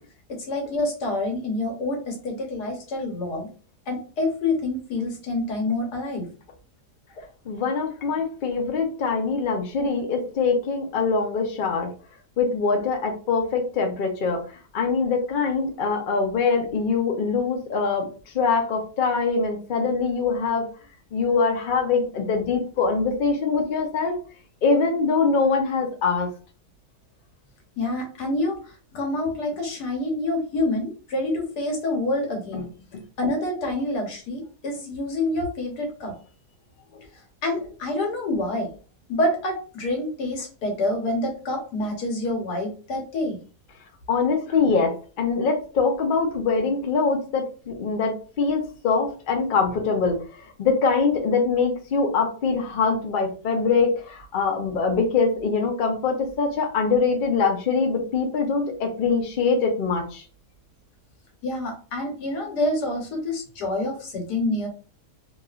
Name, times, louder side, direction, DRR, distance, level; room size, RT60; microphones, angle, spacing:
voice 1, 0.3-3.5 3.9-6.3 7.1-7.2 27.8-32.7 33.2-36.1 37.4-38.7 39.1-43.4 61.4-64.7, left 2 dB, 75° left, 1 dB, 1.5 m, -27 dB
voice 2, 7.5-11.9 12.4-14.4 14.7-18.1 18.3-20.7 21.1-24.2 24.6-26.3 44.1-50.2 50.6-60.2, left 4 dB, 60° left, 2 dB, 0.5 m, -23 dB
3.0 x 2.5 x 2.3 m, 0.37 s
omnidirectional pair, 1.7 m